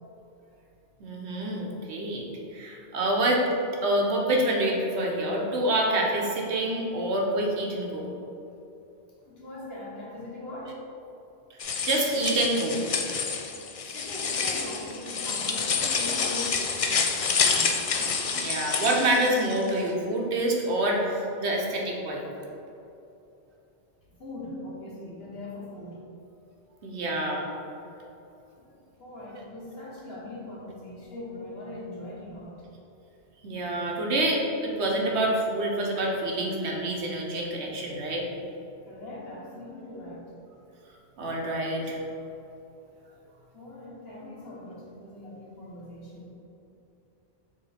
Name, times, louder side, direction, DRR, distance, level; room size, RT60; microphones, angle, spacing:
voice 1, 1.0-2.2 2.5-3.4 3.8-8.1 11.6-12.8 17.5-22.2 26.8-27.5 33.4-38.2 41.2-42.0, right 1 dB, 85° right, -1 dB, 1.2 m, -27 dB
voice 2, 9.2-10.8 13.9-17.7 24.2-26.0 28.6-32.6 38.9-40.2 43.5-46.3, left 1 dB, 70° left, -5 dB, 1.6 m, -41 dB
sound 1, 11.6-19.7, left 5 dB, 50° left, 0.4 m, -28 dB
6.7 x 3.4 x 4.2 m, 2.8 s
omnidirectional pair, 1.1 m